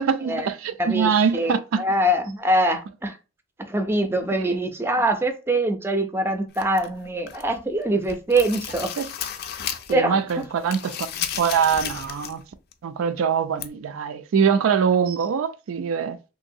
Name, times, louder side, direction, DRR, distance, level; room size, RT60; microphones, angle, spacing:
voice 1, 0.0-1.8 4.3-4.6 9.0-9.1 9.9-12.4 12.8-16.2, right 6 dB, 90° right, 0.3 m, -23 dB
voice 2, 0.8-3.2 3.6-9.0 9.9-10.2, right 1 dB, 10° right, 0.4 m, -23 dB
sound 1, 6.5-7.6 7.9-10.0 10.3-12.4 12.7-12.8 13.6-13.7, left 9 dB, 50° left, 0.4 m, -33 dB
3.1 x 2.8 x 2.6 m
head